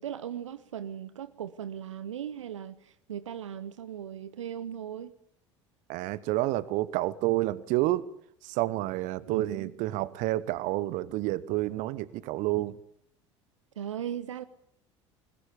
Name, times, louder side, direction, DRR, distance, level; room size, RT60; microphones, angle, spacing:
voice 1, 0.0-5.1 9.3-9.7 13.8-14.4, right 9 dB, 75° right, 0.9 m, -38 dB
voice 2, 5.9-8.0 8.4-12.8, right 17 dB, 50° right, 1.1 m, -29 dB
21.0 x 20.5 x 8.5 m
figure-of-eight pair, 70°, 16 cm